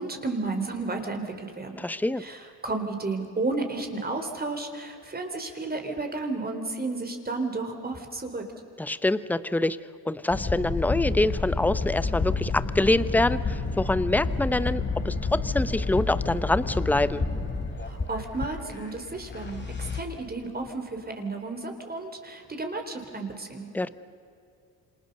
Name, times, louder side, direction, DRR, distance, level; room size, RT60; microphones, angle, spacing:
voice 1, 0.0-1.8 2.2-8.4 17.8-23.7, right 3 dB, 25° right, 5 dB, 3.8 m, -32 dB
voice 2, 1.8-2.2 8.8-9.8 10.0-17.2 23.7-23.9, left 2 dB, 5° left, 15 dB, 0.8 m, -25 dB
sound 1, 10.3-20.0, left 3 dB, 30° left, 3.5 m, -30 dB
28.0 x 26.5 x 6.7 m, 2.6 s
cardioid pair, 90°, 37 cm